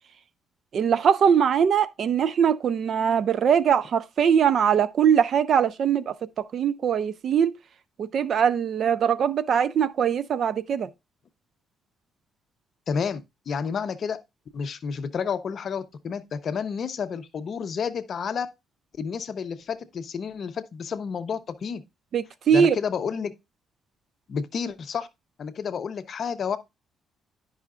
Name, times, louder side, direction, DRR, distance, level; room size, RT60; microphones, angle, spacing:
voice 1, 0.7-7.5 8.0-10.9 22.1-22.8, right 8 dB, 45° right, 0.3 m, -22 dB
voice 2, 12.9-14.2 14.5-18.5 19.0-21.8 22.5-23.3 24.3-25.1 25.4-26.6, left 6 dB, 40° left, 0.6 m, -30 dB
10.5 x 5.5 x 2.4 m
cardioid pair, 165°, 0 cm